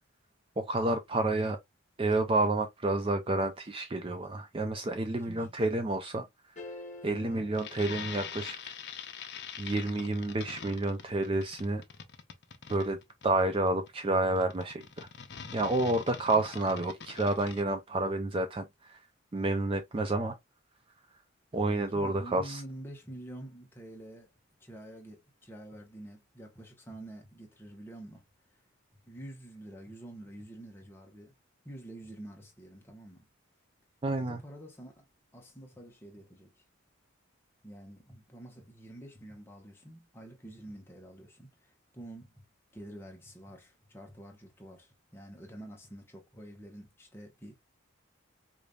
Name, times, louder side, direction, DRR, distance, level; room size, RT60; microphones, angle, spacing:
voice 1, 0.6-1.6 2.0-6.3 7.0-8.7 9.6-11.8 12.7-13.0 13.2-15.1 15.5-19.0 19.3-20.4 21.5-22.6 34.0-34.4, right 2 dB, 25° right, 0.4 m, -29 dB
sound 1, 6.6-8.8, left 2 dB, 35° left, 1.3 m, -48 dB
sound 2, 7.5-17.6, left 7 dB, 55° left, 0.7 m, -44 dB
voice 2, 21.9-24.3 24.6-28.2 28.9-31.3 31.6-33.3 34.2-35.1 35.3-36.5 37.6-42.5 42.7-47.6, right 1 dB, 10° left, 1.0 m, -48 dB
5.0 x 2.6 x 2.3 m
head